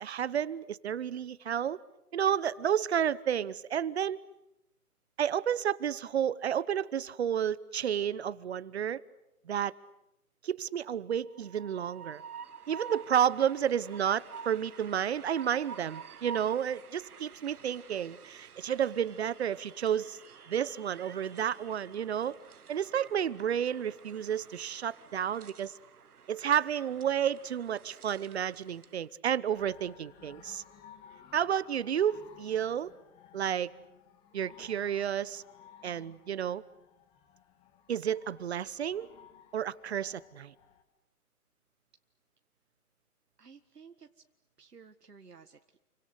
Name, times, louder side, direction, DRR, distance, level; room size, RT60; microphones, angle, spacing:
voice 1, 0.0-1.8 2.1-4.2 5.2-9.0 9.5-9.7 10.4-12.2 12.7-20.2 20.5-22.4 22.7-25.7 26.3-30.6 31.3-32.9 33.3-33.7 34.3-35.4 35.8-36.6 37.9-39.1 39.5-40.5, right 9 dB, 45° right, 20 dB, 1.0 m, -31 dB
Train, 11.2-29.0, right 7 dB, 70° right, 1.4 m, -49 dB
sound 1, 29.5-40.8, left 8 dB, 10° left, 1.2 m, -57 dB
voice 2, 43.4-44.1 44.6-45.8, right 5 dB, 90° right, 7 dB, 1.8 m, -54 dB
30.0 x 24.5 x 8.1 m, 0.88 s
hypercardioid pair, 150°, 46 cm